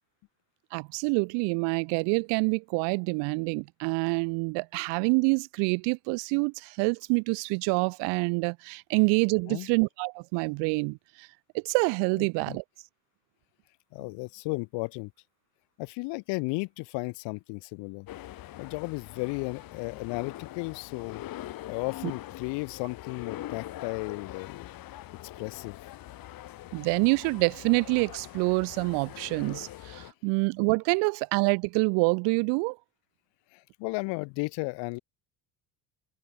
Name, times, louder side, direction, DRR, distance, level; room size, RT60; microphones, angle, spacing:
voice 1, 0.7-11.3 11.5-12.6 22.0-22.1 26.7-32.8, right 33 dB, 75° right, 0.6 m, -27 dB
voice 2, 12.2-12.6 13.9-15.1 15.8-18.1 18.6-24.7 25.4-25.8 33.5-35.0, left 27 dB, 80° left, 1.7 m, -34 dB
sound 1, 18.1-30.1, left 14 dB, 55° left, 1.5 m, -43 dB
supercardioid pair, 105°, 42 cm